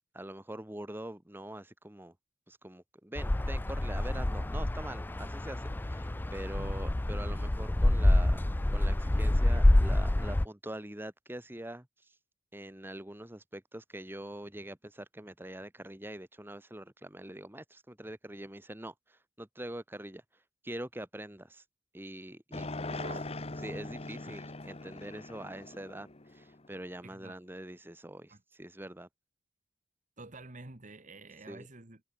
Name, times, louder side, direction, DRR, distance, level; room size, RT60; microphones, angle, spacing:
voice 1, 0.1-2.1 2.5-8.4 8.7-12.1 12.5-20.2 20.6-21.6 21.9-22.7 23.0-23.1 23.6-29.1 31.5-31.7, right 1 dB, 10° right, 1.5 m, -44 dB
sound 1, 3.2-10.5, left 1 dB, 10° left, 0.3 m, -27 dB
sound 2, 22.5-26.9, left 2 dB, 30° left, 1.2 m, -41 dB
voice 2, 22.9-23.3 27.0-27.4 28.3-28.4 30.2-32.0, right 2 dB, 40° right, 1.8 m, -48 dB
head